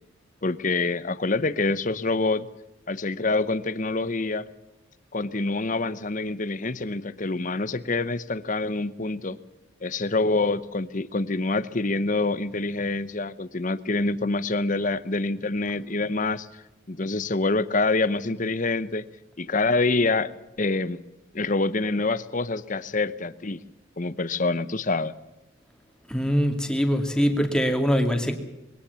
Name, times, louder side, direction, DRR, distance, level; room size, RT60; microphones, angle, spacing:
voice 1, 0.4-2.5 2.9-4.5 5.1-9.4 9.8-16.5 16.9-19.1 19.4-20.3 20.6-21.0 21.3-23.6 24.0-25.1, left 3 dB, 40° left, 15 dB, 0.9 m, -26 dB
voice 2, 26.1-28.3, equal, 5° left, 5 dB, 2.4 m, -23 dB
22.0 x 17.5 x 7.0 m, 0.99 s
head